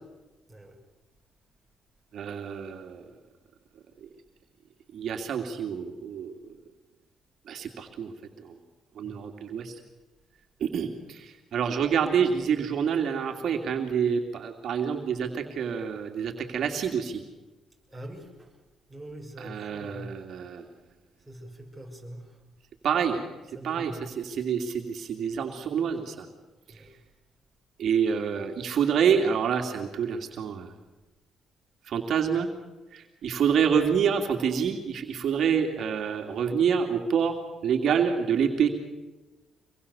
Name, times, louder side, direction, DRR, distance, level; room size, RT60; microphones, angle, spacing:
voice 1, 2.1-3.0 4.9-6.3 7.5-8.6 9.0-9.8 10.6-17.2 19.4-20.6 22.8-23.2 23.6-26.3 26.7-26.8 27.8-30.7 31.9-32.5 32.9-37.4 37.6-38.7, right 7 dB, 65° right, 4 dB, 2.6 m, -27 dB
voice 2, 17.9-18.5 18.9-20.2 21.2-22.4 23.5-24.1 26.7-27.0, right 1 dB, 5° right, 0 dB, 6.6 m, -43 dB
25.5 x 22.0 x 7.0 m, 1.2 s
cardioid pair, 90°, 0 cm